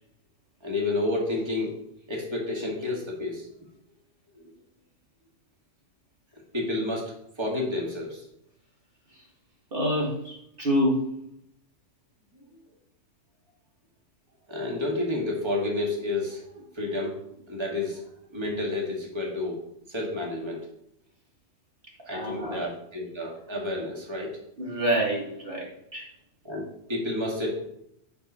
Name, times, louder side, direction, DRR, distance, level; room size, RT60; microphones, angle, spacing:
voice 1, 0.6-1.7 2.1-3.5 4.4-4.5 6.5-8.2 14.5-18.0 18.3-19.6 19.9-20.7 22.1-24.4 26.4-27.7, left 2 dB, 20° right, -2 dB, 2.1 m, -30 dB
voice 2, 9.7-11.2 22.1-22.7 24.6-26.1, equal, 45° right, -3 dB, 2.0 m, -27 dB
10.0 x 4.9 x 5.5 m, 0.75 s
omnidirectional pair, 1.3 m